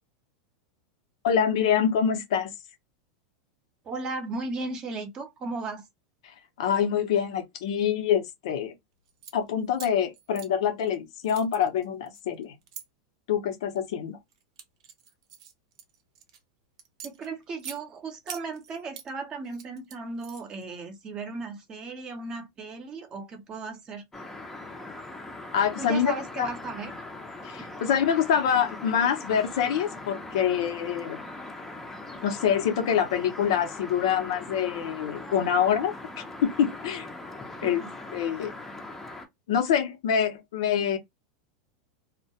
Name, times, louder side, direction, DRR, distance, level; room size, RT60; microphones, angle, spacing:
voice 1, 1.2-2.5 6.6-8.7 9.3-12.5 13.3-14.2 25.5-26.5 27.4-31.2 32.2-37.1 37.6-37.8 38.1-38.5 39.5-41.0, left 8 dB, 75° left, 0.7 m, -25 dB
voice 2, 3.9-5.8 17.0-24.0 25.8-26.9 37.6-37.9, right 3 dB, 30° right, 0.7 m, -36 dB
sound 1, 9.1-9.4 9.7-11.0 11.2-12.8 13.5-13.9 14.3-16.4 16.8-17.8 18.3-19.1 19.4-20.6, right 9 dB, 70° right, 0.7 m, -44 dB
sound 2, 24.1-39.3, left 2 dB, 10° left, 0.6 m, -41 dB
2.2 x 2.1 x 2.7 m
supercardioid pair, 135°, 3 cm